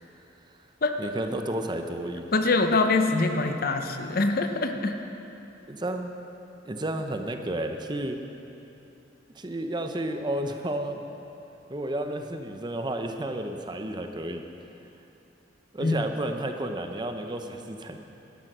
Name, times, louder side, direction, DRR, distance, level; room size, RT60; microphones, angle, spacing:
voice 1, 1.0-2.3 5.7-6.1 6.6-8.2 9.3-11.0 11.7-14.4 15.7-18.0, right 1 dB, 25° right, 6 dB, 0.7 m, -31 dB
voice 2, 2.3-5.0 15.8-16.1, left 3 dB, 55° left, 6 dB, 0.8 m, -24 dB
12.0 x 11.0 x 6.1 m, 2.9 s
head